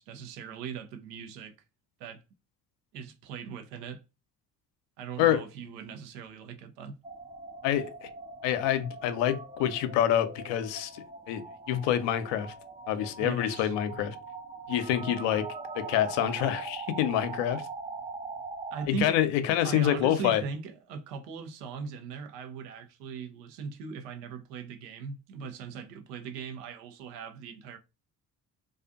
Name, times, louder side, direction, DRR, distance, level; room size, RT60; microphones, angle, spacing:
voice 1, 0.0-1.5 2.0-2.2 2.9-4.0 5.0-7.0 13.2-13.7 18.7-19.2 19.6-27.8, right 6 dB, 80° right, 0.7 m, -39 dB
sound 1, 7.0-18.9, right 4 dB, 15° right, 0.4 m, -42 dB
voice 2, 7.6-8.1 8.4-12.5 12.9-14.2 14.7-15.5 15.7-17.6 18.9-20.4, left 11 dB, 65° left, 0.6 m, -27 dB
2.4 x 2.3 x 2.5 m
hypercardioid pair, 45°, 48 cm